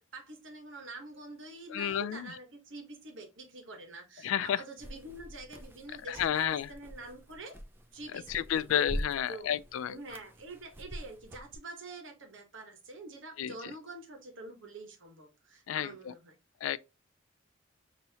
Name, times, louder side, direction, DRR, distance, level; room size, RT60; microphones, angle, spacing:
voice 1, 0.0-7.5 7.9-8.8 9.3-9.5 9.9-16.4, right 2 dB, 70° right, 1.3 m, -46 dB
voice 2, 1.7-2.3 4.2-4.6 6.1-6.7 8.3-9.9 13.4-13.5 15.7-16.1 16.6-16.8, left 10 dB, 85° left, 0.3 m, -31 dB
sound 1, 4.8-11.6, equal, 10° right, 0.4 m, -44 dB
5.4 x 2.8 x 2.8 m
head